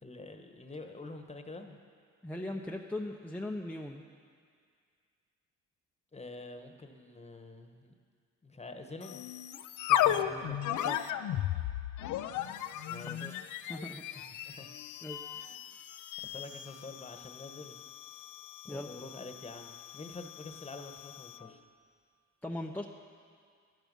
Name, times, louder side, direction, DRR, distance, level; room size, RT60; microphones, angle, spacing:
voice 1, 0.0-1.8 6.1-7.9 8.4-9.2 12.9-13.5 14.4-14.7 15.3-15.8 16.2-17.8 18.6-21.6, left 2 dB, 20° left, 6 dB, 1.3 m, -47 dB
voice 2, 2.2-4.0 9.9-10.6 10.8-11.0 13.0-13.3 13.7-14.0 15.0-15.2 18.7-18.9 22.4-22.8, left 1 dB, 5° left, -1 dB, 0.8 m, -39 dB
sound 1, 9.0-21.5, left 11 dB, 75° left, 0.6 m, -36 dB
17.5 x 11.0 x 5.5 m, 2.1 s
cardioid pair, 90°, 30 cm